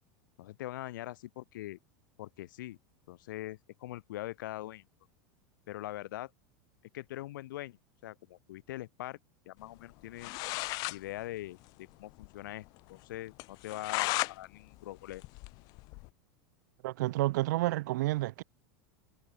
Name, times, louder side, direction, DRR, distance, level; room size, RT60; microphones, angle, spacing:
voice 1, 0.4-1.8 2.2-2.8 3.1-4.8 5.7-6.3 6.9-9.2 9.5-10.3 10.9-15.2, left 15 dB, 90° left, 5.7 m, -42 dB
sound 1, 9.9-10.0 10.2-11.0 11.3-11.4 11.7-11.8 12.2-12.3 12.7-12.8 13.4-14.3 14.7-16.1, left 25 dB, 40° left, 3.1 m, -35 dB
voice 2, 16.8-18.4, right 18 dB, 65° right, 3.3 m, -30 dB
supercardioid pair, 180°, 10 cm